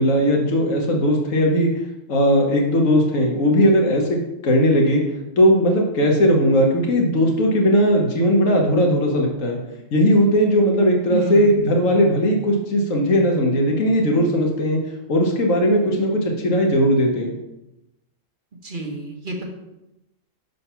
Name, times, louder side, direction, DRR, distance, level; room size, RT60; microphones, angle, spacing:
voice 1, 0.0-1.7 2.1-5.0 5.4-9.6 9.9-14.8 15.1-17.4, equal, 75° left, 1 dB, 1.4 m, -18 dB
voice 2, 11.1-11.6 18.6-19.4, right 3 dB, 45° right, 1 dB, 1.1 m, -28 dB
5.7 x 4.0 x 5.5 m, 0.93 s
omnidirectional pair, 1.4 m